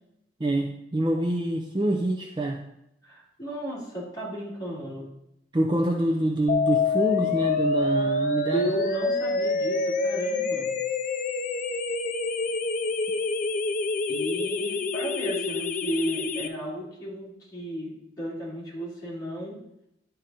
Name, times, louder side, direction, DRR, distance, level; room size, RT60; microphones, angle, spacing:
voice 1, 0.4-2.6 5.5-8.7, right 1 dB, 25° right, 2 dB, 0.5 m, -26 dB
voice 2, 3.0-5.1 8.5-10.7 14.1-19.6, equal, 20° left, -7 dB, 2.9 m, -34 dB
sound 1, 6.5-16.5, left 3 dB, 45° left, 0.4 m, -27 dB
11.0 x 3.8 x 4.2 m, 0.82 s
head